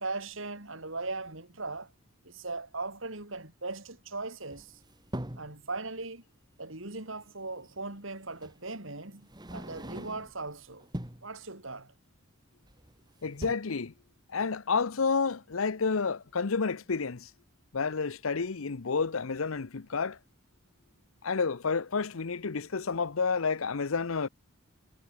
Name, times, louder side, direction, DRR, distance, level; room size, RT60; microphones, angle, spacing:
voice 1, 0.0-1.9 2.2-4.8 5.4-6.2 6.6-10.9 11.2-11.9, right 3 dB, 70° right, 4.8 m, -39 dB
sound 1, 4.5-5.6 7.2-7.3 8.4-8.6 9.2-10.4 10.8-11.3 12.6-13.0 13.3-13.5, right 1 dB, 20° right, 2.8 m, -41 dB
voice 2, 13.2-13.9 14.3-17.3 17.7-20.2 21.2-24.3, left 5 dB, 85° left, 0.8 m, -30 dB
head